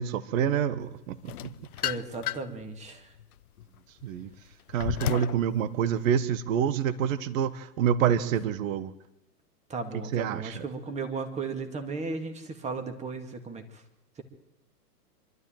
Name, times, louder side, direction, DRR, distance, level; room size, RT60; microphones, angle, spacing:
voice 1, 0.0-1.5 4.0-4.3 4.7-8.9 10.1-10.6, right 8 dB, 55° right, 15 dB, 1.3 m, -27 dB
sound 1, 1.3-2.6 3.2-5.4, left 13 dB, 65° left, 0.7 m, -33 dB
voice 2, 1.8-3.1 9.7-13.6, right 4 dB, 15° right, 7 dB, 2.1 m, -35 dB
25.0 x 12.5 x 9.0 m, 0.87 s
hypercardioid pair, 135°, 48 cm